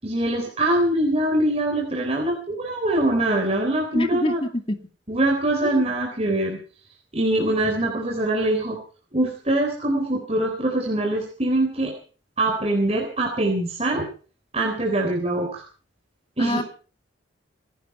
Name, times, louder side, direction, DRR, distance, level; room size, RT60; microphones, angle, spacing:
voice 1, 0.0-4.4 5.1-6.6 7.1-8.8 9.1-11.9 12.4-14.1 14.5-15.6 16.4-16.6, right 1 dB, 35° right, 1 dB, 3.7 m, -23 dB
voice 2, 3.9-4.8 5.7-5.8 16.4-16.6, left 1 dB, 30° left, 7 dB, 2.5 m, -25 dB
28.0 x 11.5 x 4.4 m, 0.40 s
head